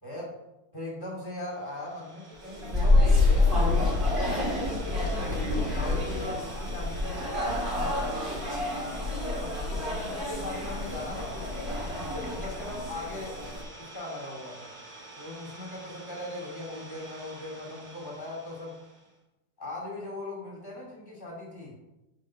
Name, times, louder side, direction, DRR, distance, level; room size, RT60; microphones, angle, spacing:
voice 1, 0.0-0.3 0.7-4.2 4.8-7.2 7.6-9.1 9.4-13.5 13.7-14.7 15.1-18.8 19.6-21.7, left 2 dB, 10° left, -4 dB, 1.6 m, -39 dB
Idling, 1.4-19.1, right 2 dB, 55° right, 1.0 m, -47 dB
sound 1, 2.4-13.6, left 2 dB, 25° right, 1.1 m, -27 dB
7.7 x 5.3 x 5.9 m, 0.99 s
omnidirectional pair, 4.5 m